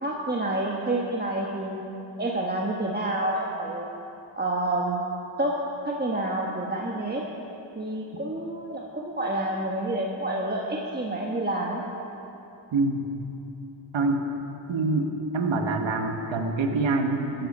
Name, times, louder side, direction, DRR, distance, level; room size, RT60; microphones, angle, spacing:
voice 1, 0.0-1.8 2.2-3.9 4.4-5.0 5.4-5.6 5.8-7.2 7.7-11.8, right 1 dB, 20° right, -2 dB, 1.3 m, -28 dB
voice 2, 12.7-13.1 13.9-14.2 14.7-15.1 15.3-17.5, right 3 dB, 75° right, 4 dB, 1.4 m, -25 dB
14.0 x 12.5 x 5.5 m, 2.9 s
cardioid pair, 70°, 46 cm